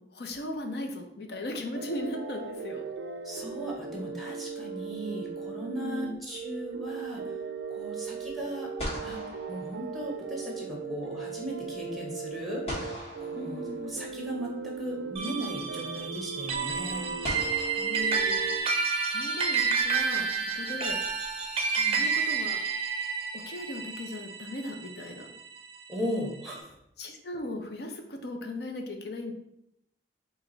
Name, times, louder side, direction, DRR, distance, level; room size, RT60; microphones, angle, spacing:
voice 1, 0.0-2.8 5.8-6.2 13.3-14.0 17.7-18.5 19.1-21.0 21.9-22.6 23.3-25.3 26.0-26.3 27.0-29.3, left 1 dB, 60° left, 4 dB, 0.6 m, -38 dB
sound 1, 1.7-18.6, right 5 dB, 90° right, 0.4 m, -38 dB
voice 2, 3.2-7.4 7.7-8.7 9.0-17.1 20.2-20.3 21.8-22.0 25.9-26.8, right 1 dB, ahead, -1 dB, 0.9 m, -37 dB
sound 2, 3.3-4.2 8.2-8.3 8.8-10.5 12.7-14.3 15.6-15.7 17.2-18.9, equal, 35° left, 1.2 m, -41 dB
sound 3, 15.2-25.8, right 5 dB, 30° right, 0.5 m, -30 dB
4.7 x 2.5 x 3.9 m, 0.79 s
head